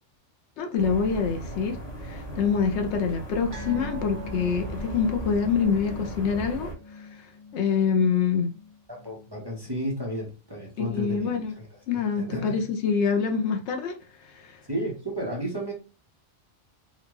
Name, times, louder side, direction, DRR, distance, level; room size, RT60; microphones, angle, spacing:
voice 1, 0.6-1.8 2.0-8.5 10.8-11.5 11.9-14.0 14.3-14.6, left 6 dB, 75° left, 0.9 m, -26 dB
sound 1, 0.8-6.7, right 1 dB, 35° left, 1.2 m, -37 dB
sound 2, 3.5-10.3 10.6-10.8 11.2-11.3, left 2 dB, 70° right, 1.0 m, -44 dB
voice 2, 8.9-11.7 12.2-12.7 14.7-15.7, right 1 dB, 25° right, 0.8 m, -33 dB
3.7 x 2.2 x 3.0 m
omnidirectional pair, 1.2 m